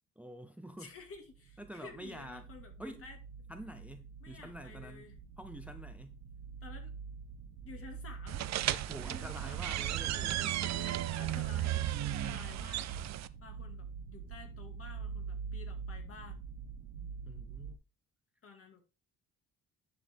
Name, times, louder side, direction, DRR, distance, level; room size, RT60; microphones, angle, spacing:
voice 1, 0.2-0.9 1.6-2.4 2.8-3.1 3.5-6.2 8.7-10.4 17.3-17.8, equal, 5° right, 0.7 m, -47 dB
voice 2, 0.8-3.2 4.2-5.1 6.6-7.0 7.6-8.5 9.0-9.8 10.0-12.9 13.4-16.5 17.0-17.4 18.4-18.8, left 4 dB, 50° left, 2.2 m, -52 dB
sound 1, 1.0-17.7, right 5 dB, 85° right, 1.1 m, -45 dB
sound 2, 8.3-13.3, right 14 dB, 65° right, 0.6 m, -35 dB
11.0 x 4.9 x 3.5 m
cardioid pair, 90°, 30 cm